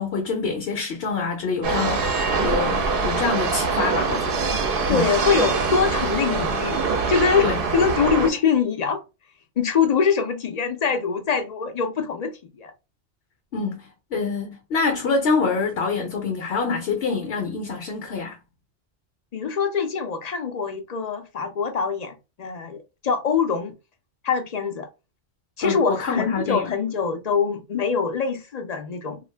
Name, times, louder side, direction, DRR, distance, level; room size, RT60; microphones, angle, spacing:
voice 1, 0.0-4.5 4.9-5.1 7.4-7.6 13.5-18.4 25.6-26.7, left 4 dB, 70° left, 0.9 m, -26 dB
sound 1, 1.6-8.3, right 4 dB, 60° right, 0.7 m, -24 dB
voice 2, 4.9-9.0 9.6-12.7 19.3-23.8 24.2-24.9 25.6-29.2, left 6 dB, 50° left, 0.5 m, -24 dB
2.5 x 2.3 x 3.2 m
omnidirectional pair, 1.1 m